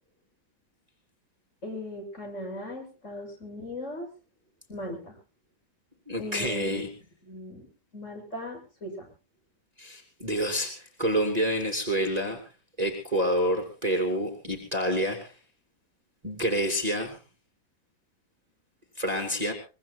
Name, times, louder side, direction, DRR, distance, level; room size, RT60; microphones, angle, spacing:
voice 1, 1.6-4.1 4.7-5.2 6.2-6.8 7.2-7.7 7.9-9.1, left 1 dB, 40° left, 2 dB, 7.3 m, -38 dB
voice 2, 6.1-6.9 9.8-12.4 12.8-15.3 16.2-17.2 19.0-19.5, equal, 20° right, 3 dB, 2.9 m, -28 dB
24.0 x 22.0 x 2.2 m, 0.35 s
omnidirectional pair, 1.9 m